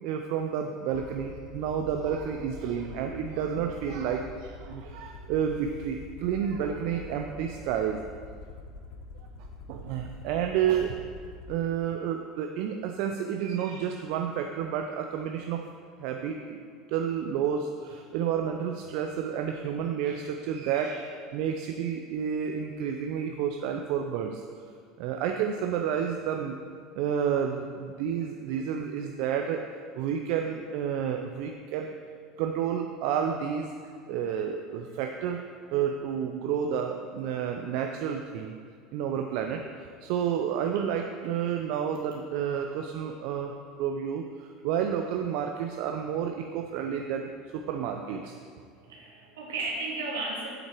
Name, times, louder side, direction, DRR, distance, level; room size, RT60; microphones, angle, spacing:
voice 1, 0.0-8.0 9.7-11.0 11.5-15.6 16.0-16.6 16.9-24.4 25.0-26.6 27.0-29.6 30.0-31.9 32.4-33.7 34.1-38.6 38.9-39.7 40.0-48.4, right 8 dB, 65° right, 4 dB, 0.5 m, -30 dB
Aircraft, 0.9-11.6, left 3 dB, 60° left, 1.1 m, -45 dB
voice 2, 48.4-50.5, right 2 dB, 85° right, -3 dB, 2.1 m, -35 dB
7.8 x 7.5 x 4.5 m, 2.1 s
hypercardioid pair, 85°, 0 cm